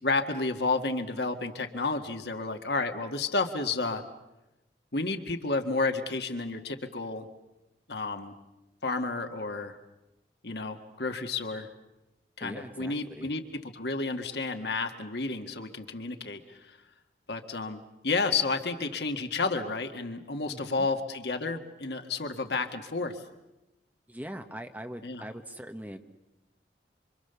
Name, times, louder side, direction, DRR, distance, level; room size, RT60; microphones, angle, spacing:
voice 1, 0.0-4.0 4.9-7.3 7.9-8.4 8.8-9.8 10.4-11.7 12.4-16.8 17.3-23.2 25.0-25.2, left 3 dB, 75° left, 6 dB, 1.8 m, -31 dB
voice 2, 12.4-13.3 20.5-20.9 24.1-26.0, equal, 10° right, 6 dB, 1.2 m, -41 dB
26.5 x 25.5 x 7.0 m, 0.97 s
head